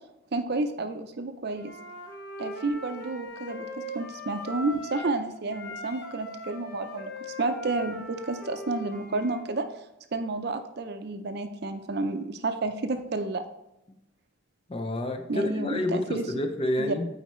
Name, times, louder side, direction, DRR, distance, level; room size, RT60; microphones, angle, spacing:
voice 1, 0.3-1.7 2.4-9.7 10.1-13.4 15.3-16.2 16.8-16.9, right 3 dB, 50° right, 8 dB, 0.5 m, -31 dB
Wind instrument woodwind instrument, 1.5-5.2 5.5-9.4, equal, 50° left, 1.1 m, -40 dB
voice 2, 14.7-17.1, left 1 dB, 25° left, 6 dB, 0.5 m, -29 dB
9.0 x 4.0 x 3.0 m, 0.89 s
head